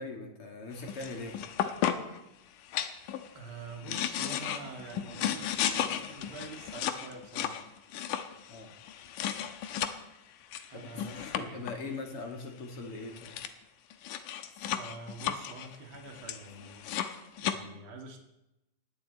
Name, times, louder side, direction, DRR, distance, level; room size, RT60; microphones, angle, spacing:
voice 1, 0.0-1.4 8.5-8.7 10.7-10.9 11.2-13.4, left 3 dB, 50° left, 3 dB, 2.6 m, -41 dB
sound 1, 0.8-2.2 2.7-3.3 3.7-10.0 10.5-11.8 12.8-12.9 13.0-13.5 13.9-17.5, left 10 dB, 85° left, 2.6 m, -34 dB
voice 2, 3.3-7.6 10.7-12.0 14.7-16.9 17.4-18.2, right 3 dB, 40° right, 2 dB, 3.0 m, -46 dB
21.0 x 16.5 x 4.1 m, 0.93 s
omnidirectional pair, 3.7 m